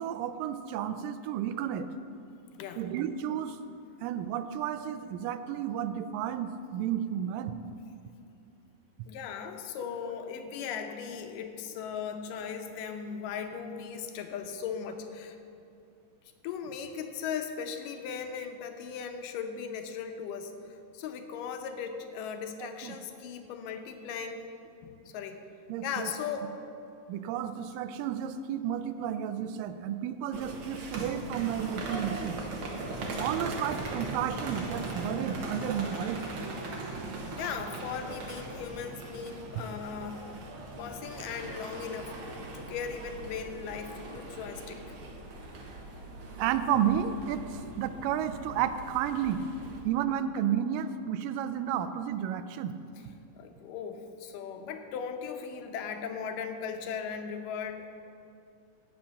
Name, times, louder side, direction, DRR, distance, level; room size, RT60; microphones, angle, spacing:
voice 1, 0.0-1.9 2.8-3.6 4.0-7.6 22.6-22.9 25.7-26.1 27.1-32.4 33.2-36.2 46.4-49.4 49.9-52.7, right 9 dB, 90° right, 11 dB, 2.3 m, -32 dB
voice 2, 9.1-15.4 16.4-20.5 20.9-24.4 24.8-25.4 25.8-26.5 37.4-40.3 40.8-42.1 42.5-44.8 53.4-58.1, left 7 dB, 85° left, 6 dB, 2.5 m, -38 dB
sound 1, 30.3-49.8, right 2 dB, 50° right, 1.8 m, -39 dB
16.5 x 5.8 x 6.4 m, 2.7 s
omnidirectional pair, 3.8 m